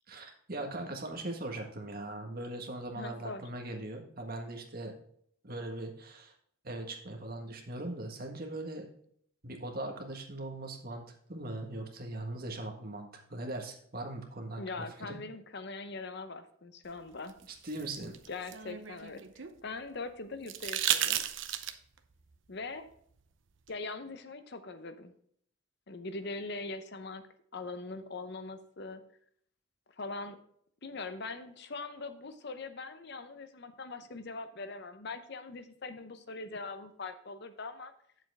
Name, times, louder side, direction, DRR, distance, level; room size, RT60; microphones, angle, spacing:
voice 1, 0.1-4.9 5.4-6.3 6.6-8.9 9.4-11.0 11.3-14.6 15.0-15.2 17.5-18.2, right 2 dB, 45° right, 3 dB, 1.5 m, -40 dB
voice 2, 3.0-3.4 14.6-17.3 18.3-21.2 22.5-22.8 23.7-25.1 25.9-27.2 27.5-29.0 30.0-30.4 30.8-37.9, left 3 dB, 50° left, 10 dB, 0.7 m, -42 dB
sound 1, 17.3-19.6 20.5-22.0 23.7-23.8, right 11 dB, 60° right, 0.7 m, -33 dB
8.7 x 7.4 x 3.5 m, 0.65 s
head